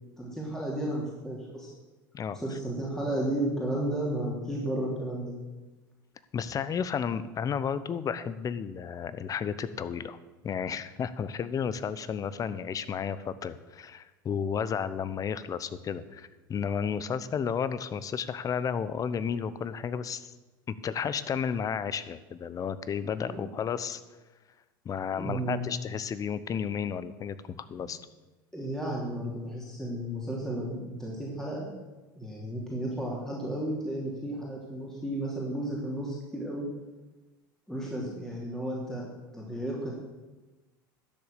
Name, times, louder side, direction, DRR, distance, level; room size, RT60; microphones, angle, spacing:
voice 1, 0.2-1.7 2.3-5.3 23.2-23.5 25.1-25.7 27.8-27.9 28.5-31.7 32.2-36.7 37.7-39.9, right 1 dB, 5° left, -4 dB, 3.1 m, -33 dB
voice 2, 6.3-10.2 10.4-20.3 20.7-24.0 24.8-27.4 27.7-28.0, left 7 dB, 30° left, 15 dB, 0.8 m, -32 dB
12.0 x 7.0 x 6.8 m, 1.2 s
hypercardioid pair, 85°, 11 cm